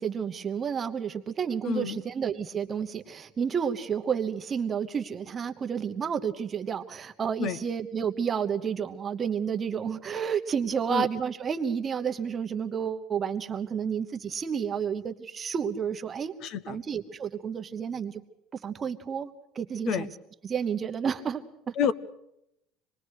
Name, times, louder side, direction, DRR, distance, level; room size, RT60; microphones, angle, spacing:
voice 1, 0.0-16.3 16.7-18.2 18.5-20.2 20.4-21.7, right 7 dB, 25° right, 6 dB, 1.0 m, -31 dB
voice 2, 1.7-2.0 7.4-7.6 10.9-11.1 16.4-16.8 19.9-20.1 21.8-21.9, left 7 dB, 50° left, 17 dB, 1.1 m, -28 dB
26.5 x 20.5 x 6.5 m, 0.81 s
cardioid pair, 160°, 0 cm